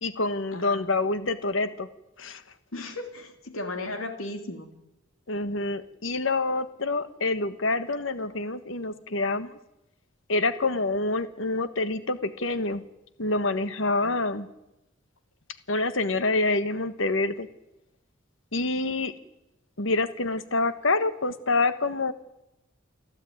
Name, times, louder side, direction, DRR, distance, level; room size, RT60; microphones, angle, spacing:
voice 1, 0.0-1.9 2.2-2.4 5.3-9.6 10.3-12.8 13.2-14.5 15.7-17.5 18.5-19.1 19.8-22.1, left 2 dB, 70° left, 12 dB, 1.4 m, -27 dB
voice 2, 0.5-0.9 2.7-4.7 14.0-14.3, left 2 dB, 85° left, 7 dB, 3.0 m, -36 dB
29.0 x 11.5 x 9.4 m, 0.91 s
head